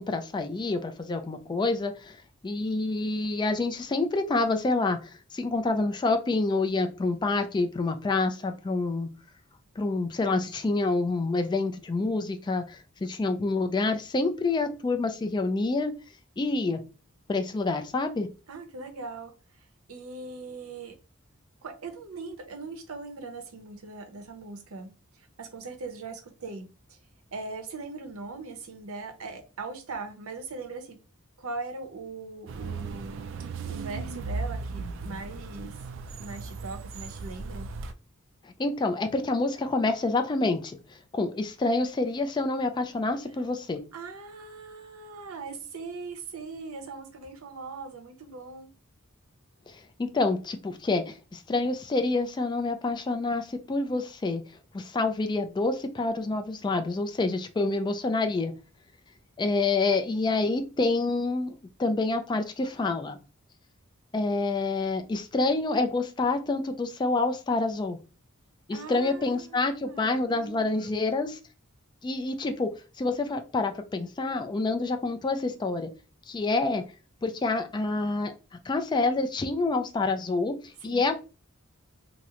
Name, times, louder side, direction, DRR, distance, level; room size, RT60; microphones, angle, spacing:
voice 1, 0.0-2.2 2.4-9.1 9.8-15.9 16.4-16.8 17.3-18.3 38.4-40.8 41.1-43.8 49.7-54.4 54.7-58.5 59.4-63.2 64.1-68.0 68.7-71.4 72.0-75.9 76.3-76.8 77.2-78.3 78.7-80.6 80.8-81.1, left 3 dB, 20° left, 0.3 m, -27 dB
voice 2, 18.5-19.3 19.9-21.0 21.6-24.9 25.2-27.0 27.3-31.0 31.4-35.8 36.2-37.7 43.9-48.7 68.7-70.9 80.8-81.1, right 3 dB, 80° right, 0.7 m, -40 dB
sound 1, 32.5-37.9, right 4 dB, 60° right, 0.3 m, -36 dB
2.9 x 2.0 x 3.6 m
head